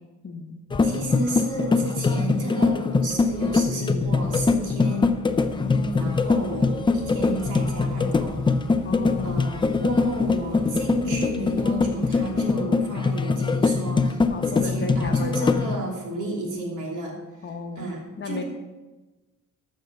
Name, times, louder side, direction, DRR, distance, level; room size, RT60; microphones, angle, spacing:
voice 1, 0.2-0.6 5.6-6.2 8.8-9.4 14.3-15.6 17.4-17.9 18.2-18.4, left 3 dB, 35° left, 4 dB, 1.0 m, -34 dB
sound 1, 0.7-15.8, left 4 dB, 15° left, 0.4 m, -23 dB
voice 2, 0.8-5.1 5.9-8.5 9.2-17.5 17.8-18.4, right 1 dB, 65° right, -1 dB, 3.0 m, -32 dB
sound 2, 5.3-12.5, equal, 10° right, 2.0 m, -42 dB
13.0 x 6.5 x 5.8 m, 1.2 s
cardioid pair, 155°, 33 cm